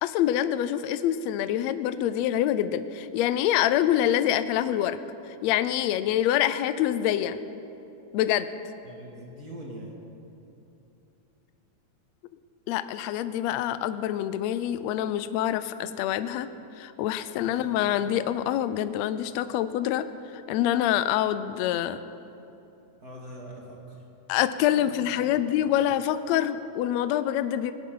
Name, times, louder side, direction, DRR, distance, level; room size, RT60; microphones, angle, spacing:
voice 1, 0.0-5.0 5.4-7.4 8.1-8.5 12.7-16.5 16.8-20.0 20.5-22.0 24.3-27.7, left 11 dB, 90° left, 12 dB, 1.5 m, -26 dB
voice 2, 8.8-9.9 17.3-17.8 23.0-24.0 24.7-25.7, right 1 dB, 30° right, -2 dB, 2.4 m, -44 dB
18.5 x 18.0 x 3.9 m, 2.9 s
omnidirectional pair, 3.8 m